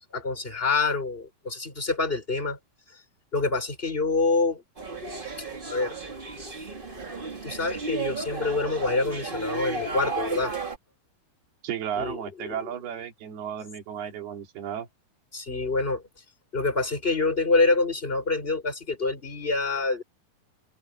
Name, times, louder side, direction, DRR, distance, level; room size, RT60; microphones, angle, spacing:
voice 1, 0.0-2.6 3.3-4.6 5.7-5.9 7.4-10.5 12.0-12.6 15.3-16.0 16.5-20.0, left 3 dB, 15° left, 5.9 m, -26 dB
sound 1, 4.8-10.8, right 3 dB, 35° right, 0.8 m, -34 dB
voice 2, 11.6-14.9, right 9 dB, 75° right, 4.8 m, -34 dB
open air
omnidirectional pair, 4.6 m